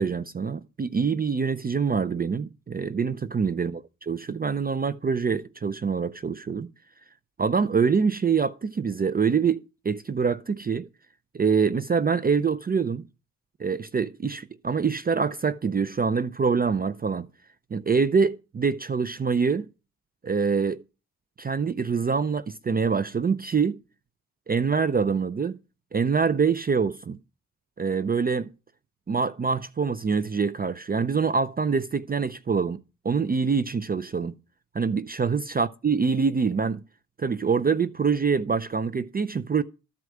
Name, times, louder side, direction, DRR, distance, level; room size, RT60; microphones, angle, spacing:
voice 1, 0.0-3.8 4.1-6.7 7.4-10.9 11.3-13.1 13.6-17.3 17.7-19.7 20.2-20.8 21.4-23.8 24.5-25.6 25.9-27.2 27.8-28.5 29.1-34.3 34.7-36.8 37.2-39.6, right 5 dB, 25° right, 0.5 m, -25 dB
13.5 x 4.7 x 7.8 m
cardioid pair, 105°, 35 cm